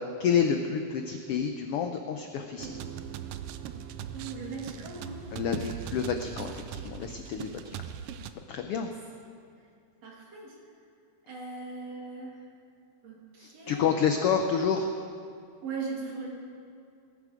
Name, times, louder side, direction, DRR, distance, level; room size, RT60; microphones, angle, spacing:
voice 1, 0.2-2.7 5.3-7.7 8.5-8.9 13.4-14.9, left 7 dB, 80° left, 5 dB, 1.3 m, -29 dB
sound 1, 2.6-8.3, right 9 dB, 85° right, 1.3 m, -40 dB
voice 2, 4.1-5.2 8.8-8.9 10.0-10.5 11.3-12.4 13.0-13.8 15.6-16.3, right 4 dB, 60° right, -2 dB, 3.4 m, -39 dB
19.5 x 11.0 x 5.0 m, 2.4 s
omnidirectional pair, 3.4 m